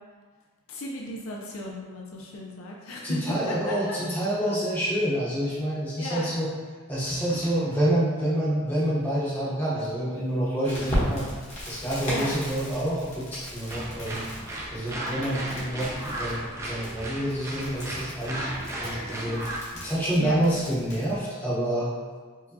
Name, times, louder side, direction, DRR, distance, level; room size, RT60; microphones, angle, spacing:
voice 1, 0.7-4.0 6.0-6.4 12.1-12.4 20.2-20.3, left 1 dB, 70° left, -2 dB, 0.5 m, -35 dB
voice 2, 3.0-6.5 6.9-11.3 11.7-14.2 14.7-18.5 18.8-19.4 19.7-21.9, right 1 dB, 10° left, -9 dB, 0.9 m, -27 dB
Crackle, 10.6-21.2, equal, 35° left, 1.0 m, -36 dB
sound 1, 13.7-19.6, right 1 dB, 15° right, 0.4 m, -35 dB
4.6 x 2.2 x 2.7 m, 1.5 s
head